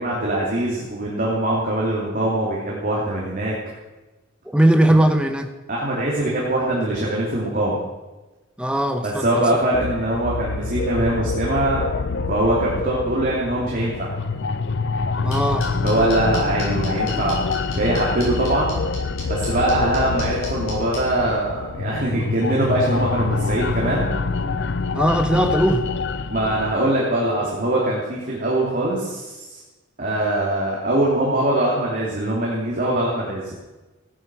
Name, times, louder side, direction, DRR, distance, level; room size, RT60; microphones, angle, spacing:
voice 1, 0.0-3.5 4.9-5.0 5.7-7.8 9.0-11.9 12.3-14.1 15.8-18.8 19.2-24.1 26.3-29.6 30.0-33.5, right 1 dB, 40° right, -4 dB, 2.9 m, -22 dB
voice 2, 4.5-5.5 8.6-9.7 15.2-15.7 19.8-19.9 24.9-25.9, right 1 dB, 5° right, 6 dB, 1.1 m, -19 dB
sound 1, 9.7-26.7, left 4 dB, 55° left, 0.6 m, -26 dB
sound 2, 15.3-21.0, left 3 dB, 75° left, 6.4 m, -35 dB
16.0 x 10.5 x 6.2 m, 1.1 s
head